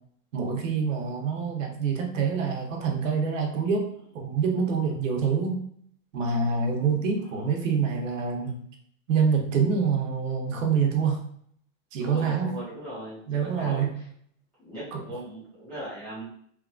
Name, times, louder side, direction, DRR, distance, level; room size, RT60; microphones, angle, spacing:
voice 1, 0.3-3.8 4.1-5.6 6.1-8.6 9.1-11.2 11.9-12.5 13.3-13.9 14.9-15.0, right 5 dB, 80° right, 2 dB, 0.8 m, -26 dB
voice 2, 12.0-14.0 14.6-16.2, right 1 dB, 5° left, -14 dB, 0.5 m, -38 dB
2.9 x 2.5 x 2.3 m, 0.64 s
supercardioid pair, 175°, 38 cm